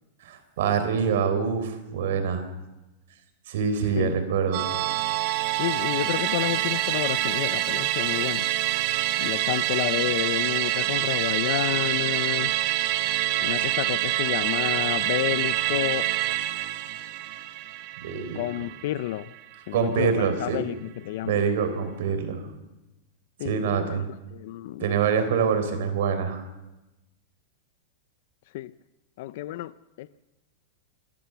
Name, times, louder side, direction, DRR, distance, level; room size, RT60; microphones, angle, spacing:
voice 1, 0.2-2.5 3.5-4.6 18.0-18.4 19.7-20.6 21.2-22.4 23.4-24.1 24.8-26.4, right 6 dB, 65° right, 8 dB, 3.9 m, -25 dB
Musical instrument, 4.5-19.2 19.5-19.6, right 14 dB, 40° right, 1.2 m, -26 dB
voice 2, 5.6-8.5 9.2-12.5 13.4-16.1 18.3-19.3 19.7-21.4 23.4-25.0 28.5-28.7 29.2-29.7 30.0-30.2, left 15 dB, 55° left, 15 dB, 0.6 m, -30 dB
27.0 x 14.0 x 6.9 m, 1.0 s
supercardioid pair, 155°, 0 cm